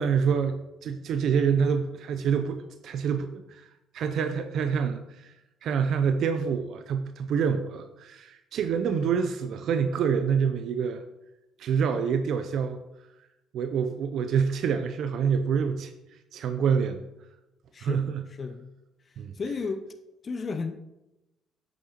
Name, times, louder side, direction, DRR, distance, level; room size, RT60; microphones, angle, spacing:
voice 1, 0.0-3.7 3.9-5.3 5.6-11.0 11.6-12.8 13.5-15.9 16.3-17.0 17.8-18.3 19.2-19.3, right 6 dB, 65° right, 8 dB, 0.4 m, -27 dB
voice 2, 17.7-18.7 19.3-19.8 20.2-20.8, left 4 dB, 40° left, 9 dB, 0.5 m, -33 dB
8.0 x 6.4 x 2.9 m, 0.96 s
hypercardioid pair, 55°, 0 cm